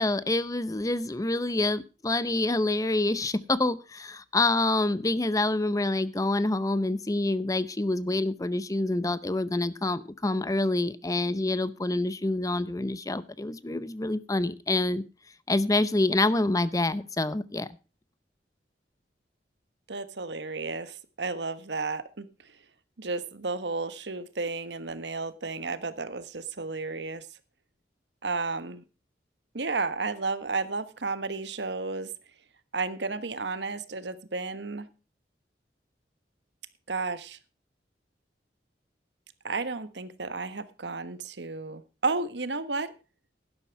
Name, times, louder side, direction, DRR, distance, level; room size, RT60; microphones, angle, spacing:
voice 1, 0.0-15.0 15.5-17.7, left 2 dB, 20° left, 16 dB, 0.7 m, -27 dB
voice 2, 19.9-22.5 23.0-27.3 28.2-28.8 29.5-32.1 32.7-34.9 36.9-37.4 39.4-42.9, right 3 dB, 80° right, 13 dB, 1.3 m, -32 dB
11.5 x 11.5 x 4.6 m, 0.32 s
head